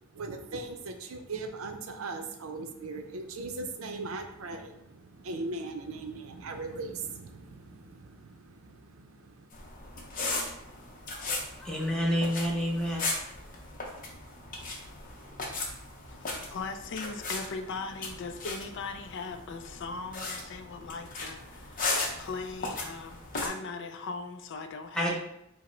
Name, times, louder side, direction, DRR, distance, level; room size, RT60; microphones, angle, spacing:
voice 1, 0.1-9.5, right 3 dB, 75° right, 0.5 m, -39 dB
sound 1, 9.5-23.5, left 2 dB, 40° left, 0.8 m, -37 dB
voice 2, 11.6-13.0 24.9-25.2, equal, 5° left, 0.7 m, -28 dB
voice 3, 16.1-25.2, left 4 dB, 60° left, 0.4 m, -39 dB
4.8 x 2.1 x 4.3 m
head